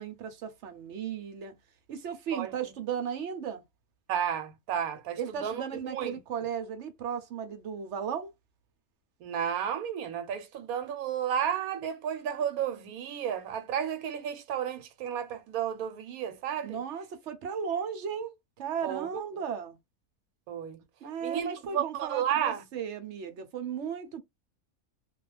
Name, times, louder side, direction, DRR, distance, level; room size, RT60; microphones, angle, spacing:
voice 1, 0.0-1.5 1.9-3.6 5.2-8.3 16.6-19.8 21.0-24.2, right 7 dB, 65° right, 0.9 m, -35 dB
voice 2, 4.1-6.2 9.2-16.8 18.8-19.2 20.5-20.8 21.2-22.6, right 9 dB, 90° right, 1.1 m, -32 dB
2.3 x 2.3 x 3.1 m
omnidirectional pair, 1.5 m